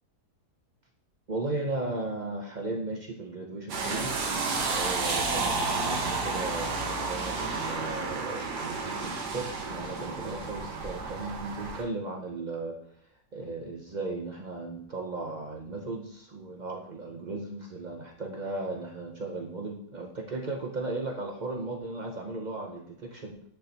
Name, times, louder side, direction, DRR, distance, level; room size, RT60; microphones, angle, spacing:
voice 1, 1.3-12.8 13.3-23.4, right 2 dB, 60° right, 2 dB, 0.4 m, -36 dB
sound 1, 3.7-11.8, right 3 dB, 80° right, 1.6 m, -31 dB
10.0 x 4.0 x 2.8 m, 0.62 s
omnidirectional pair, 1.7 m